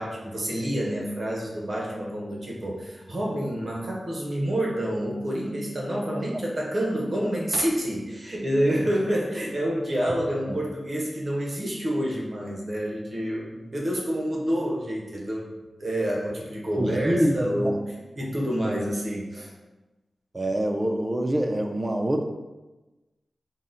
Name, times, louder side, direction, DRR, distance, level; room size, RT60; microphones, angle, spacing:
voice 1, 0.0-15.5 15.8-19.5, equal, 50° right, -4 dB, 0.8 m, -28 dB
voice 2, 16.8-17.7 20.3-22.2, right 1 dB, 25° right, 4 dB, 0.4 m, -25 dB
3.9 x 2.1 x 3.8 m, 1.1 s
wide cardioid pair, 85°, 0 cm